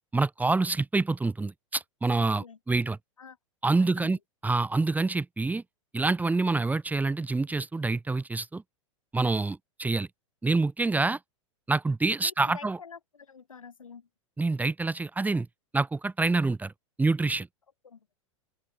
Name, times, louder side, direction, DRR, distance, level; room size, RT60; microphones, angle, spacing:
voice 1, 0.1-3.0 3.6-4.2 4.4-5.6 5.9-8.6 9.1-10.1 10.4-11.2 11.7-12.8 14.4-15.5 15.7-16.7 17.0-17.5, right 3 dB, 10° right, 1.6 m, -26 dB
voice 2, 2.2-2.6 3.2-3.4 3.8-4.2 12.2-14.1 17.8-18.1, left 6 dB, 80° left, 6.2 m, -47 dB
open air
figure-of-eight pair, 95°, 17 cm